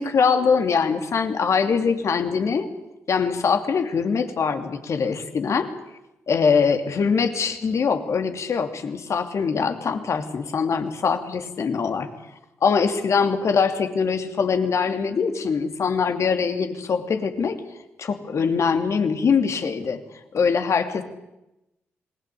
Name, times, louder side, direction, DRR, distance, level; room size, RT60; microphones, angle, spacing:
voice 1, 0.0-2.7 3.1-5.7 6.3-12.1 12.6-17.6 18.0-20.0 20.3-21.0, left 5 dB, 60° left, 7 dB, 2.9 m, -23 dB
27.0 x 20.0 x 8.5 m, 0.92 s
hypercardioid pair, 40°, 6 cm